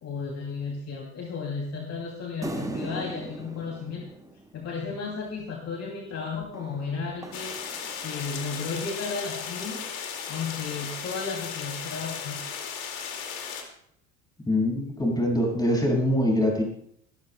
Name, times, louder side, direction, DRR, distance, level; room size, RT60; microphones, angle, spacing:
voice 1, 0.0-4.0 4.5-7.6 8.0-9.8 10.3-12.4, left 4 dB, 40° left, 0 dB, 2.6 m, -34 dB
sound 1, 2.4-5.1 6.5-8.6, right 2 dB, 10° right, 1.0 m, -39 dB
sound 2, 7.3-13.6, left 7 dB, 65° left, 2.3 m, -36 dB
voice 2, 14.5-16.6, left 1 dB, 10° left, 1 dB, 5.7 m, -23 dB
24.5 x 12.0 x 2.2 m, 0.69 s
figure-of-eight pair, 70°, 42 cm